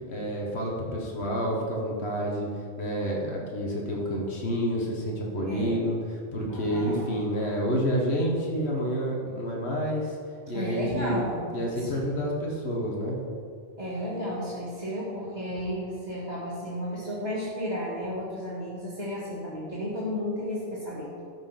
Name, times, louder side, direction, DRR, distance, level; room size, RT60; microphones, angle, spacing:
voice 1, 0.1-2.5 2.8-6.0 6.3-10.2 10.5-11.2 11.5-13.2, equal, 80° left, -2 dB, 1.7 m, -29 dB
voice 2, 5.4-5.9 6.5-7.1 10.5-12.0 13.8-21.1, equal, 40° right, -7 dB, 1.8 m, -33 dB
13.0 x 4.9 x 5.8 m, 2.2 s
omnidirectional pair, 1.1 m